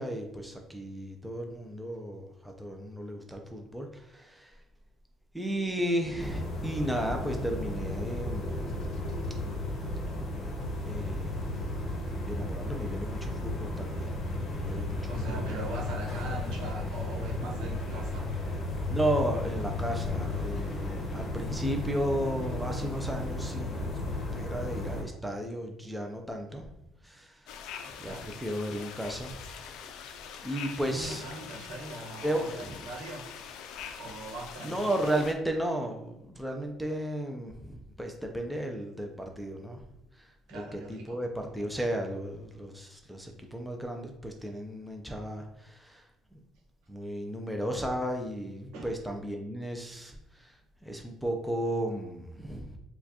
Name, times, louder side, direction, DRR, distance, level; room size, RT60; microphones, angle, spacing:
voice 1, 0.0-4.6 5.3-9.0 10.8-11.5 12.3-14.2 14.6-15.4 18.9-24.0 24.3-26.7 27.0-27.5 27.8-29.4 30.4-31.6 32.2-32.9 34.6-39.8 40.1-46.4 46.9-52.8, right 1 dB, ahead, 2 dB, 0.4 m, -34 dB
sound 1, 6.2-25.0, left 2 dB, 45° left, 0.8 m, -34 dB
voice 2, 15.1-18.3 28.0-28.3 30.8-33.2 34.0-35.1 40.5-41.2 48.7-48.9, right 2 dB, 85° right, -1 dB, 1.0 m, -40 dB
sound 2, 27.5-35.3, left 7 dB, 75° left, 0.4 m, -44 dB
4.5 x 2.2 x 2.8 m, 0.87 s
cardioid pair, 140°, 0 cm